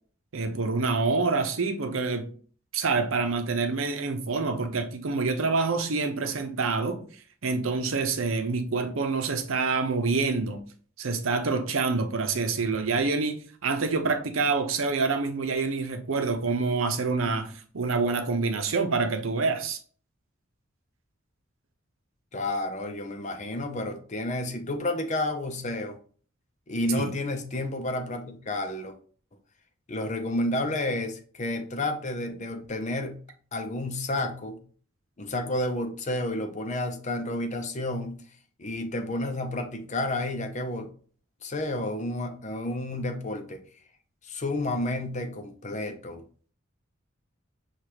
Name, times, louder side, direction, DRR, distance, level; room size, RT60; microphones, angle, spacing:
voice 1, 0.3-2.3 2.7-7.0 7.4-10.6 11.0-19.8 26.9-27.1, right 4 dB, 90° right, 0.7 m, -27 dB
voice 2, 22.3-26.0 26.7-29.0 29.9-33.2 33.5-34.6 35.2-38.2 38.6-40.9 41.4-43.6 44.2-46.2, left 1 dB, 35° left, 0.6 m, -31 dB
6.5 x 2.4 x 2.9 m
head